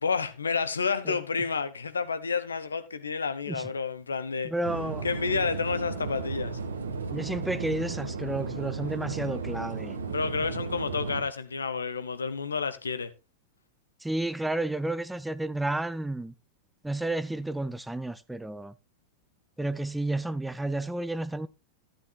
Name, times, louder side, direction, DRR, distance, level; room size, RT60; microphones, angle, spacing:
voice 1, 0.0-4.5 5.0-6.6 10.1-13.1, left 5 dB, 75° left, 1.0 m, -30 dB
voice 2, 4.4-5.1 7.1-10.0 14.0-16.3 16.8-18.7 19.6-21.5, right 2 dB, 5° right, 0.6 m, -31 dB
sound 1, 4.6-11.2, right 4 dB, 70° right, 1.5 m, -34 dB
13.0 x 12.0 x 2.3 m
figure-of-eight pair, 90°, 0 cm